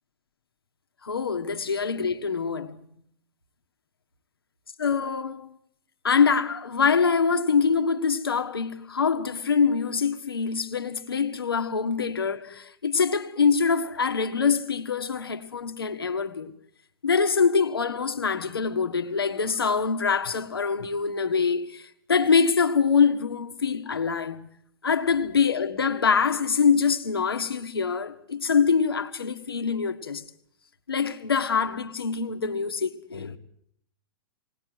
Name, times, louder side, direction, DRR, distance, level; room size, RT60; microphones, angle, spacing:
voice 1, 1.0-2.8 4.8-5.5 6.0-16.5 17.0-21.8 22.1-24.5 24.8-30.2 30.9-33.4, left 5 dB, 85° left, 1.6 m, -24 dB
19.5 x 19.0 x 7.9 m
hypercardioid pair, 115°, 12 cm